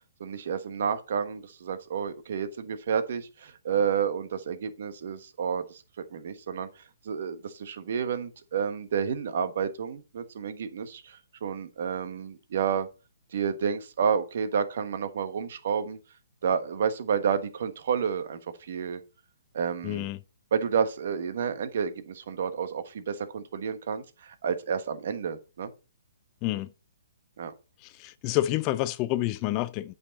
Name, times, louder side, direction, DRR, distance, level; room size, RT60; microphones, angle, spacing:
voice 1, 0.2-5.8 6.1-6.7 7.0-12.9 13.3-16.0 16.4-19.0 19.5-20.1 20.5-25.7 27.4-27.5, right 7 dB, 60° right, 1.3 m, -30 dB
voice 2, 19.8-20.2 26.4-26.7 27.8-29.9, left 15 dB, 30° left, 0.4 m, -28 dB
8.7 x 5.5 x 4.1 m
hypercardioid pair, 140°, 0 cm